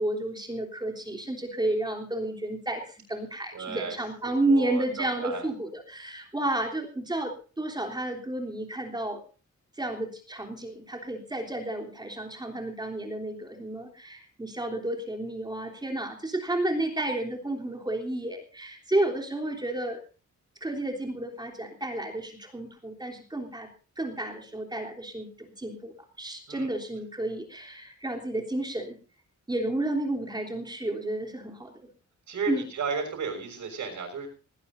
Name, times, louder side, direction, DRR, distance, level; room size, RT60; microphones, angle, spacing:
voice 1, 0.0-9.2 9.8-20.0 20.6-23.7 24.0-25.3 25.6-29.0 29.5-31.9 32.5-32.6, right 1 dB, 15° right, 2 dB, 3.4 m, -31 dB
voice 2, 3.5-3.9 4.2-5.4 26.5-26.7 32.3-34.3, right 4 dB, 75° right, 2 dB, 6.6 m, -34 dB
19.5 x 18.5 x 2.7 m, 0.36 s
wide cardioid pair, 175°, 30 cm